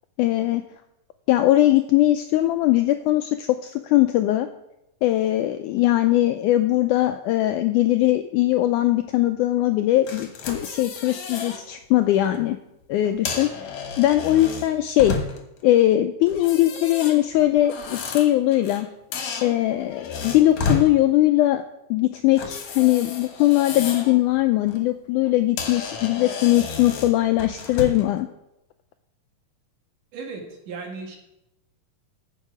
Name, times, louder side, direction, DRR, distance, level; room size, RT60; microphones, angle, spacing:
voice 1, 0.2-0.6 1.3-4.5 5.0-12.6 12.9-13.7 14.0-15.2 15.6-18.9 19.4-21.6 21.9-28.3, left 15 dB, 85° left, 8 dB, 1.8 m, -20 dB
sound 1, 10.1-11.6 12.0-12.3 13.0-15.6 16.3-18.8 19.1-20.9 22.3-24.2 24.5-24.8 25.2-25.3 25.6-28.1, left 5 dB, 60° left, 2.4 m, -32 dB
voice 2, 30.1-31.2, right 4 dB, 65° right, 2 dB, 3.3 m, -36 dB
14.5 x 7.4 x 4.8 m, 0.87 s
omnidirectional pair, 4.0 m